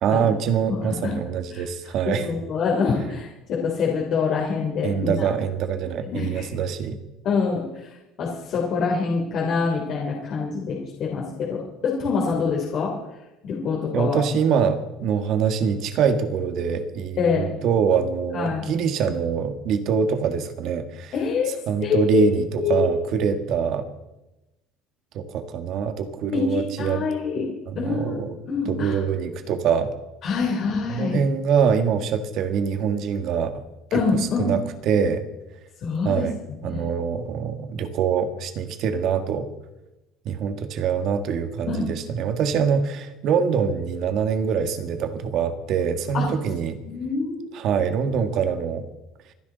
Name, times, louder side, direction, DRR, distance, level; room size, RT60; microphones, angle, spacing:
voice 1, 0.0-2.3 4.8-7.0 13.9-21.1 21.7-23.8 25.1-27.0 27.7-28.4 28.6-29.9 30.9-33.5 34.2-34.6 34.8-35.2 36.0-36.4 36.6-39.5 40.2-46.8 47.5-48.8, right 7 dB, 55° right, 8 dB, 1.8 m, -24 dB
voice 2, 0.7-1.2 1.5-1.6 2.2-5.3 6.0-6.4 7.2-12.9 13.4-14.2 17.2-17.5 18.3-18.6 21.1-21.5 21.8-22.2 22.6-22.9 26.3-27.5 27.8-29.0 30.2-31.2 33.9-34.5 35.8-36.3 36.6-36.9 41.7-41.9 46.1-46.2 46.9-47.5, left 5 dB, 50° left, -2 dB, 3.3 m, -25 dB
27.5 x 10.5 x 4.1 m, 0.99 s
cardioid pair, 125°, 0 cm